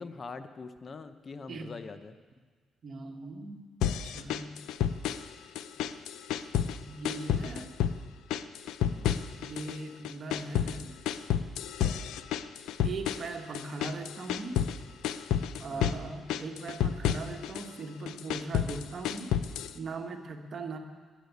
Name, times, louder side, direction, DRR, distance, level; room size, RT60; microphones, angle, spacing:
voice 1, 0.0-2.2 8.9-9.1 15.6-16.0, left 4 dB, 40° left, 10 dB, 0.7 m, -43 dB
voice 2, 2.8-3.6 4.0-4.6 6.8-7.7 9.4-11.0 12.8-14.6 15.6-19.3 19.7-20.8, right 3 dB, 50° right, 5 dB, 1.4 m, -39 dB
sound 1, 3.8-5.3 5.6-6.8 7.0-8.0 8.3-9.8 10.0-14.8 15.0-16.0 16.3-17.7 18.1-19.8, left 9 dB, 85° left, 0.5 m, -30 dB
11.5 x 8.3 x 9.4 m, 1.5 s
cardioid pair, 90°, 0 cm